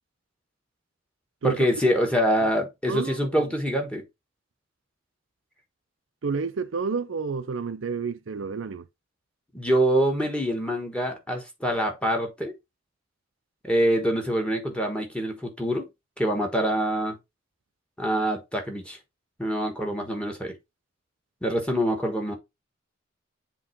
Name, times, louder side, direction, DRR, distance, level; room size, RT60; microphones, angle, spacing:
voice 1, 1.4-4.0 9.5-12.5 13.6-15.9 16.2-17.2 18.0-19.0 19.4-20.5 21.4-22.3, equal, 5° left, 1.4 m, -25 dB
voice 2, 2.9-3.5 6.2-8.8, right 5 dB, 75° right, 0.5 m, -30 dB
7.4 x 3.0 x 4.5 m
head